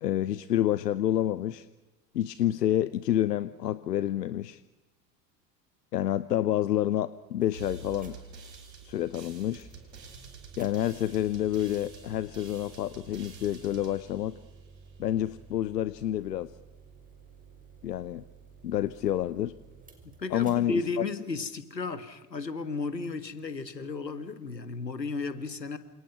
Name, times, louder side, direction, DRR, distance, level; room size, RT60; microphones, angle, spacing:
voice 1, 0.0-1.7 2.1-4.6 5.9-8.2 8.8-9.7 10.6-14.3 15.0-16.5 17.8-18.2 18.6-19.5 20.3-21.0, left 12 dB, 75° left, 17 dB, 0.9 m, -28 dB
sound 1, 6.7-6.8 7.3-20.9, right 4 dB, 15° right, 6.0 m, -53 dB
sound 2, 7.5-15.0, right 6 dB, 80° right, 4.7 m, -49 dB
voice 2, 20.2-25.8, left 4 dB, 90° left, 12 dB, 1.9 m, -34 dB
29.0 x 27.5 x 6.0 m, 1.1 s
figure-of-eight pair, 80°, 49 cm